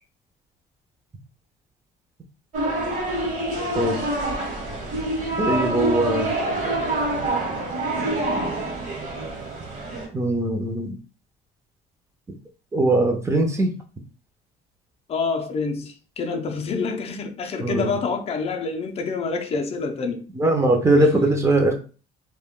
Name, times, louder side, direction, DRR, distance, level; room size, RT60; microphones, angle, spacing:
sound 1, 2.5-10.1, right 2 dB, 50° right, 1.1 m, -26 dB
voice 1, 3.8-4.1 5.4-6.3 10.1-10.9 12.7-13.7 17.6-18.0 20.3-21.7, right 1 dB, 15° right, 0.6 m, -20 dB
voice 2, 15.1-20.2, left 4 dB, 35° left, 0.5 m, -27 dB
2.2 x 2.2 x 3.6 m
cardioid pair, 110°, 17 cm